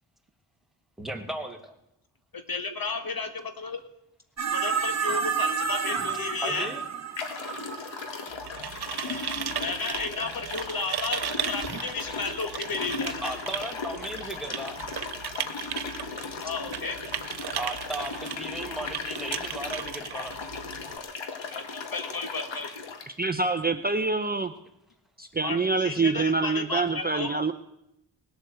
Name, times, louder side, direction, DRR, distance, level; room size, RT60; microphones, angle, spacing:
voice 1, 1.0-1.7 6.4-6.8 13.2-14.8 17.6-20.4, right 1 dB, ahead, 5 dB, 2.1 m, -36 dB
voice 2, 2.3-3.8 4.5-6.7 9.6-13.4 16.4-17.0 21.5-22.8 25.4-27.4, left 4 dB, 50° left, 8 dB, 1.7 m, -33 dB
sound 1, 4.4-8.8 11.6-11.8, right 6 dB, 35° right, 1.4 m, -30 dB
sound 2, 6.4-6.5 7.1-23.1, left 4 dB, 75° left, 1.8 m, -37 dB
sound 3, 8.3-21.0, right 9 dB, 60° right, 0.8 m, -36 dB
voice 3, 23.2-24.5 25.2-27.5, right 3 dB, 20° right, 7 dB, 0.7 m, -26 dB
19.0 x 8.1 x 7.8 m, 0.82 s
wide cardioid pair, 110°, 45 cm